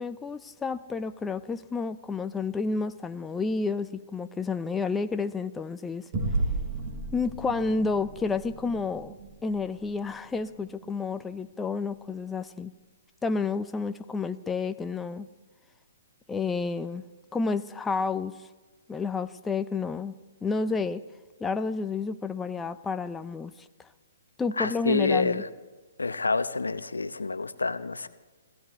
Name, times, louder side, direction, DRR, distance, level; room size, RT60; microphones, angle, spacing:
voice 1, 0.0-6.0 7.1-9.1 9.4-12.7 13.2-15.3 16.3-17.0 17.3-18.3 18.9-20.1 20.4-21.0 21.4-23.5 24.4-25.4, left 4 dB, 10° left, 10 dB, 0.5 m, -30 dB
sound 1, 6.1-11.0, right 2 dB, 40° right, 3.2 m, -34 dB
voice 2, 24.6-25.5 26.0-28.1, left 3 dB, 90° left, 13 dB, 0.8 m, -28 dB
26.5 x 15.0 x 3.1 m, 1.3 s
hypercardioid pair, 130°, 0 cm